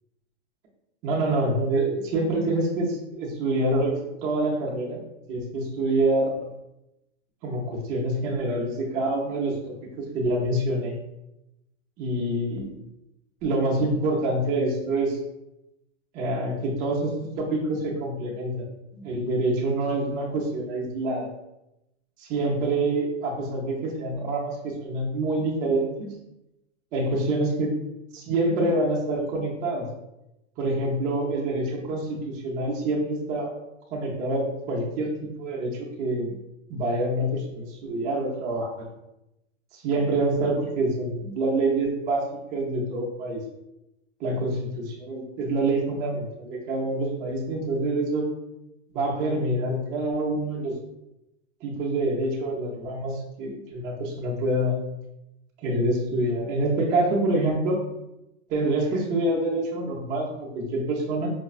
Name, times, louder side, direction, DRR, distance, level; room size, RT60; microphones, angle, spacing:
voice 1, 1.0-5.0 5.3-6.5 7.4-10.9 12.0-12.7 13.4-15.2 16.1-18.7 18.9-21.3 22.2-26.1 26.9-27.7 28.1-29.9 30.6-33.5 33.9-36.3 36.7-38.9 39.7-42.2 42.5-43.4 44.2-44.5 45.0-48.3 48.9-50.8 51.6-54.8 55.6-57.8 58.5-61.3, right 2 dB, 25° right, -3 dB, 0.6 m, -26 dB
4.9 x 2.1 x 2.4 m, 0.89 s
supercardioid pair, 155°, 36 cm